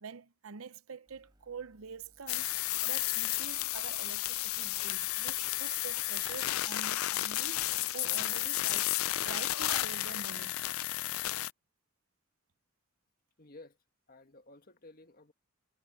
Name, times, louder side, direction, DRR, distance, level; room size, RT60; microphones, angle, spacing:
voice 1, 0.0-2.5 2.8-9.0 9.2-10.5, right 6 dB, 90° right, 0.7 m, -46 dB
sound 1, 1.1-9.3, equal, 20° right, 5.0 m, -67 dB
sound 2, 2.3-11.5, left 16 dB, 85° left, 0.4 m, -32 dB
voice 2, 13.4-13.8 14.1-15.3, left 2 dB, 45° left, 1.9 m, -54 dB
head